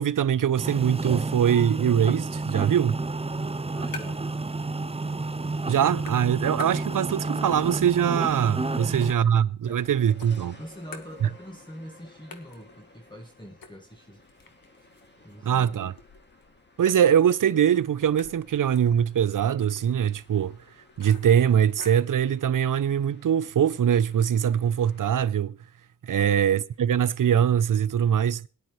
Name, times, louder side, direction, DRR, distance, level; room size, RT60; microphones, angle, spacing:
voice 1, 0.0-3.0 5.7-10.6 11.2-11.3 15.4-15.9 16.8-20.6 21.0-25.6 26.0-28.5, right 9 dB, 65° right, 0.6 m, -22 dB
sound 1, 0.6-9.1, right 3 dB, 20° right, 0.7 m, -30 dB
sound 2, 3.4-4.4 4.7-5.4 5.7-7.3 7.7-9.8 10.2-11.6 11.9-12.0 12.3-22.2, left 4 dB, 80° left, 1.5 m, -48 dB
voice 2, 3.7-4.2 5.5-5.6 8.8-9.3 9.6-9.8 10.6-14.2 15.2-15.9 26.2-26.5, equal, 15° left, 1.6 m, -44 dB
sound 3, 9.6-25.1, left 2 dB, 30° left, 2.3 m, -55 dB
17.5 x 10.5 x 3.1 m
cardioid pair, 65°, 34 cm